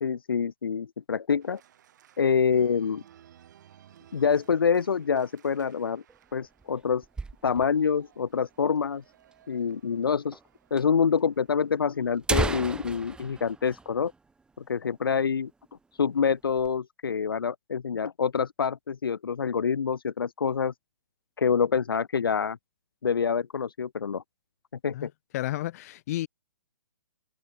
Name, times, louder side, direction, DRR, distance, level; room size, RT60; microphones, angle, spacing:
voice 1, 0.0-1.6 2.2-3.0 4.1-6.0 6.3-7.0 7.4-9.0 9.5-10.4 10.7-14.1 14.7-15.5 16.0-20.7 21.4-22.6 23.0-24.2 24.8-25.1, left 6 dB, 75° left, 0.5 m, -26 dB
Organ, 1.4-12.2, right 10 dB, 55° right, 6.8 m, -59 dB
sound 1, 6.1-7.9 8.2-8.3 8.5-8.6 9.3-9.4 10.3-10.4 10.8-10.9 11.6-11.7 12.1-14.7 15.0-15.1 15.5-15.8 16.2-16.8, right 4 dB, 5° right, 2.5 m, -34 dB
voice 2, 24.9-26.3, left 15 dB, 45° left, 1.1 m, -32 dB
open air
figure-of-eight pair, 125°, 12 cm